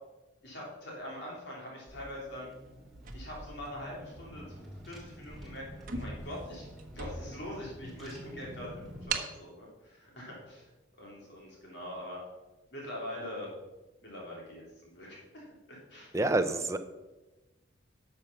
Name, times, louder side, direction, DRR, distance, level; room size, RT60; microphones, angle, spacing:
voice 1, 0.4-2.5 3.1-6.7 6.9-10.7 11.0-12.2 12.7-13.5 14.0-16.1, left 1 dB, 55° left, -3 dB, 3.1 m, -43 dB
Car / Engine, 1.9-9.1, equal, ahead, 2.7 m, -48 dB
sound 1, 3.0-4.3 4.9-5.1 5.4-5.5 5.8-7.5 8.0-8.1 9.1-9.4, right 4 dB, 45° right, 1.1 m, -39 dB
voice 2, 16.1-16.8, right 2 dB, 15° right, 7 dB, 0.6 m, -27 dB
11.5 x 6.9 x 5.9 m, 1.1 s
head